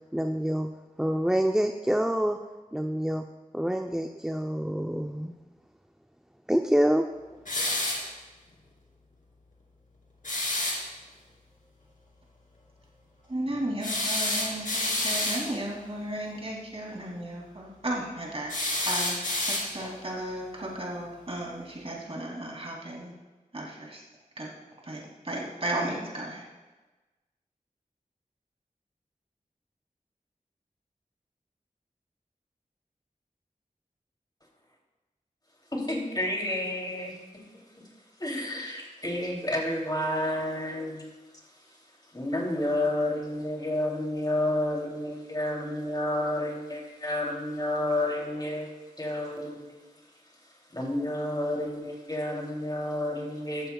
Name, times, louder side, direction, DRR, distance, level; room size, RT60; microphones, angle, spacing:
voice 1, 0.1-0.7 1.0-2.4 2.7-3.2 3.5-5.3 6.5-7.4, equal, 5° right, 4 dB, 0.6 m, -26 dB
sound 1, 7.5-8.1 10.2-10.8 13.8-15.5 18.5-19.9, left 1 dB, 70° left, 2.9 m, -29 dB
voice 2, 13.3-19.2 19.4-23.1 23.5-24.0 24.4-24.5 24.8-26.4, right 1 dB, 45° right, -2 dB, 2.8 m, -34 dB
voice 3, 35.7-37.4 37.8-37.9 38.2-41.1 42.1-49.7 50.7-53.7, left 1 dB, 30° left, -1 dB, 3.0 m, -30 dB
14.5 x 12.5 x 2.3 m, 1.2 s
wide cardioid pair, 65°, 14 cm